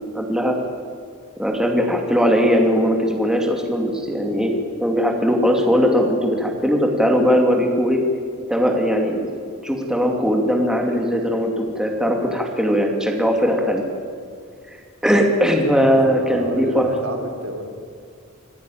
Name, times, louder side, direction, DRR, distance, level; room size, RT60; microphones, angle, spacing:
voice 1, 0.1-0.5 1.4-4.5 4.8-8.0 8.5-9.3 9.6-13.8 15.0-16.9, equal, 5° right, 1 dB, 2.6 m, -19 dB
voice 2, 15.6-17.6, right 1 dB, 85° right, 3 dB, 3.9 m, -32 dB
26.0 x 14.0 x 9.4 m, 2.2 s
head